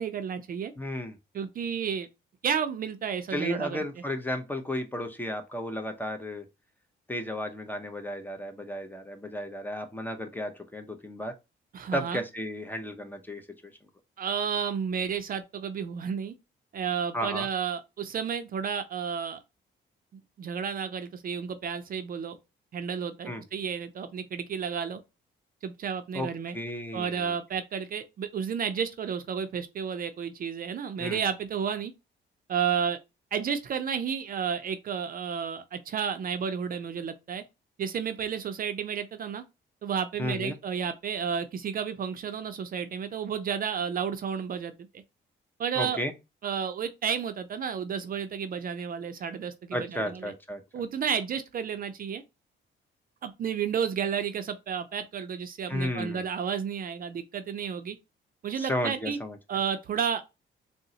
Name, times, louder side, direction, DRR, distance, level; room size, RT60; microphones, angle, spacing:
voice 1, 0.0-0.7 1.3-2.1 2.4-3.8 11.7-12.2 14.2-16.3 16.7-19.4 20.4-22.4 22.7-25.0 25.6-26.5 26.9-31.9 32.5-33.0 33.3-37.4 37.8-39.4 39.8-45.0 45.6-46.0 46.4-50.3 50.7-52.2 53.2-58.0 58.4-59.2 59.5-60.2, right 7 dB, 45° right, 0.4 m, -31 dB
voice 2, 0.8-1.2 3.3-6.5 7.1-11.3 11.9-13.7 17.1-17.5 23.3-23.4 26.1-26.3 26.5-27.3 31.0-31.2 40.2-40.6 45.8-46.1 49.7-50.6 55.7-56.2 58.6-59.4, left 1 dB, 10° left, 0.6 m, -33 dB
3.7 x 2.1 x 2.7 m
cardioid pair, 90°, 20 cm